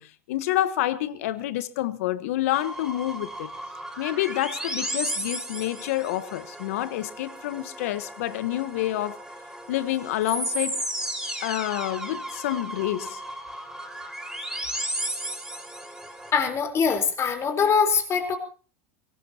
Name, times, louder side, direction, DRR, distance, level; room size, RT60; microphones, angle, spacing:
voice 1, 0.0-3.5 4.0-9.2 9.7-10.8 11.4-13.2, left 14 dB, 75° left, 1.2 m, -28 dB
sound 1, 2.5-16.3, right 1 dB, 5° right, 5.0 m, -35 dB
voice 2, 16.3-18.4, left 6 dB, 35° left, 4.1 m, -23 dB
24.0 x 18.0 x 2.9 m
hypercardioid pair, 95°, 8 cm